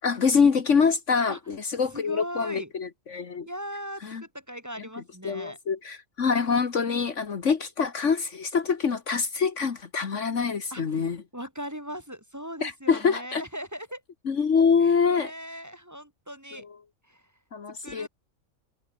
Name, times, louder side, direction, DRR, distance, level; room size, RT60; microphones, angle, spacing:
voice 1, 0.0-3.5 4.0-4.2 5.2-11.2 12.6-13.4 14.2-15.3 16.6-16.7 17.5-18.1, left 5 dB, 60° left, 1.8 m, -25 dB
voice 2, 1.9-2.7 3.4-5.6 10.7-14.0 14.8-16.6 17.1-17.2 17.8-18.1, equal, 10° right, 4.1 m, -39 dB
omnidirectional pair, 1.4 m